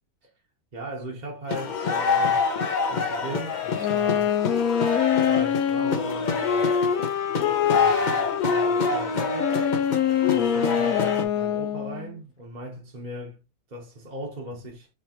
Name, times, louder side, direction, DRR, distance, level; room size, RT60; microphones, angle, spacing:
voice 1, 0.7-2.4 2.9-4.4 5.1-6.8 7.3-9.6 10.2-13.4 13.7-14.9, right 1 dB, 35° right, 1.0 m, -38 dB
sound 1, 1.5-11.2, left 5 dB, 45° left, 0.6 m, -27 dB
Wind instrument woodwind instrument, 3.8-12.1, left 8 dB, 80° left, 1.1 m, -24 dB
4.7 x 3.1 x 2.9 m
omnidirectional pair, 1.5 m